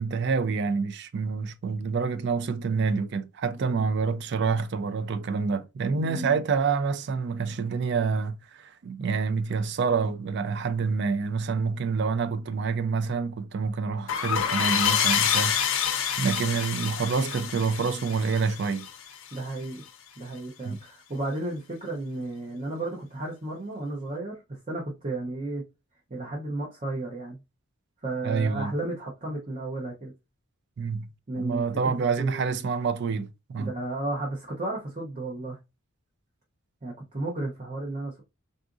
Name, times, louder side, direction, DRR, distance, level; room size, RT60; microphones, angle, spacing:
voice 1, 0.0-15.7 16.2-18.9 20.6-20.8 28.2-28.7 30.8-31.1 31.4-33.7, right 5 dB, 50° right, 0.3 m, -27 dB
voice 2, 5.9-6.4 19.3-19.8 20.2-25.6 26.1-27.4 28.0-30.1 31.3-31.9 32.2-32.4 33.6-35.6 36.8-38.2, right 2 dB, 30° right, 0.7 m, -33 dB
sound 1, 14.1-19.4, left 8 dB, 60° left, 0.5 m, -27 dB
3.8 x 2.4 x 2.5 m
head